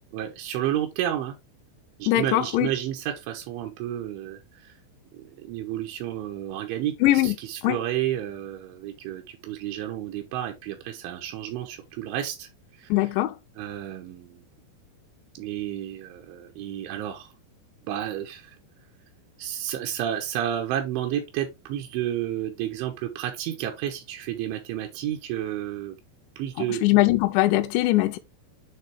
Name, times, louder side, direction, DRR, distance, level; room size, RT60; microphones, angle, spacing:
voice 1, 0.1-1.4 2.0-4.7 5.1-12.5 12.8-13.1 13.6-14.4 15.3-17.3 17.8-18.6 19.4-26.0 26.4-26.8, right 11 dB, 80° right, 3.3 m, -31 dB
voice 2, 2.1-2.7 7.0-7.4 7.6-7.8 12.9-13.4 26.8-28.2, left 16 dB, 80° left, 2.7 m, -21 dB
9.4 x 3.7 x 3.4 m
omnidirectional pair, 5.5 m